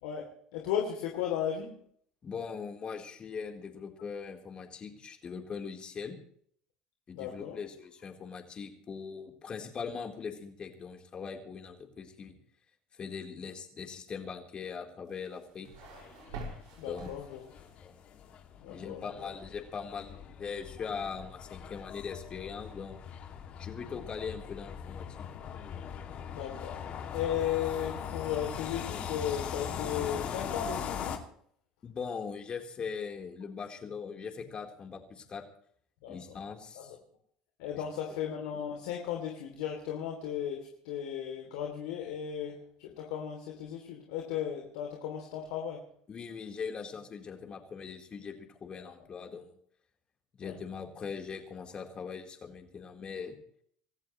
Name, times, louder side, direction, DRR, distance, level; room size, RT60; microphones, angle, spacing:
voice 1, 0.0-1.8 7.1-7.6 16.8-17.6 18.6-19.3 26.3-26.8 27.1-31.2 36.0-36.4 36.7-36.8 37.6-45.8 50.4-50.5, left 9 dB, 80° left, 1 dB, 3.1 m, -36 dB
voice 2, 2.2-6.2 7.1-12.4 12.9-15.7 16.9-17.1 17.8-17.9 18.7-23.0 23.6-25.3 31.8-35.4 36.1-37.0 37.7-37.8 38.1-38.2 46.1-49.6 50.3-53.4, left 6 dB, 35° left, 3 dB, 4.1 m, -41 dB
sound 1, 15.1-17.8, right 3 dB, 85° right, 5.8 m, -46 dB
sound 2, 15.8-31.2, left 8 dB, 50° left, 2.6 m, -41 dB
27.0 x 14.0 x 3.3 m, 0.62 s
supercardioid pair, 90°, 3 cm